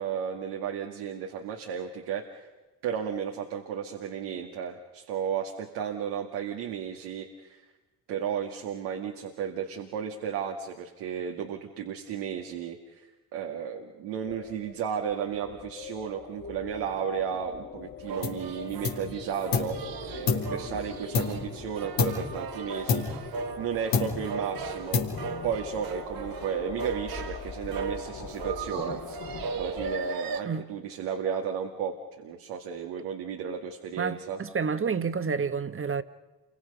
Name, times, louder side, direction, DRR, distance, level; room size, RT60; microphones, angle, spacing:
voice 1, 0.0-2.5 2.8-7.6 8.1-13.1 13.3-19.8 20.0-25.1 25.4-34.4, right 7 dB, 80° right, 2.1 m, -34 dB
sound 1, 14.2-30.0, left 6 dB, 45° left, 3.6 m, -42 dB
sound 2, 18.0-30.4, right 5 dB, 60° right, 1.5 m, -38 dB
sound 3, 18.2-18.5 18.8-19.8 20.3-21.6 22.0-22.4 22.9-23.6 23.9-24.4 24.9-25.5, left 6 dB, 75° left, 3.7 m, -29 dB
voice 2, 34.0-36.0, right 5 dB, 30° right, 1.5 m, -29 dB
29.5 x 24.0 x 5.5 m
hypercardioid pair, 55°, 40 cm